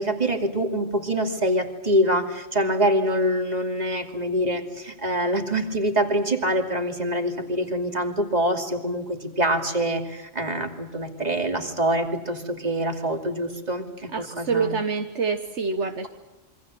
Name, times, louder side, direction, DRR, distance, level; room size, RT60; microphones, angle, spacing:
voice 1, 0.0-14.8, right 1 dB, 35° right, 4 dB, 2.8 m, -25 dB
voice 2, 14.1-16.1, right 5 dB, 70° right, 6 dB, 1.5 m, -26 dB
27.0 x 24.5 x 7.7 m, 0.99 s
omnidirectional pair, 1.2 m